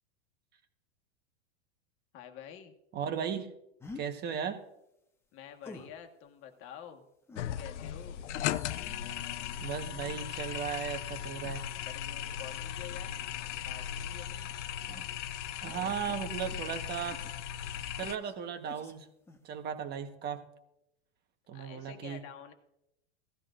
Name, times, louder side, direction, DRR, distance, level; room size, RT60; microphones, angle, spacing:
voice 1, 2.1-2.7 5.3-7.0 7.4-8.2 11.8-13.1 13.6-14.5 21.5-22.5, left 9 dB, 40° left, 4 dB, 1.5 m, -48 dB
voice 2, 2.9-3.5 3.9-4.6 9.6-11.6 14.9-15.0 15.5-17.2 17.9-19.1 19.4-20.4 21.5-22.2, right 8 dB, 30° right, 7 dB, 1.3 m, -36 dB
sound 1, 3.8-4.1 5.6-6.0 7.3-10.4 11.4-12.2 13.0-13.3 14.1-17.7 18.0-18.3 18.6-19.0 19.3-19.4, left 3 dB, 5° left, 1.0 m, -52 dB
sound 2, 7.4-18.2, left 10 dB, 80° left, 0.6 m, -37 dB
17.0 x 13.0 x 2.6 m, 0.83 s
supercardioid pair, 140°, 35 cm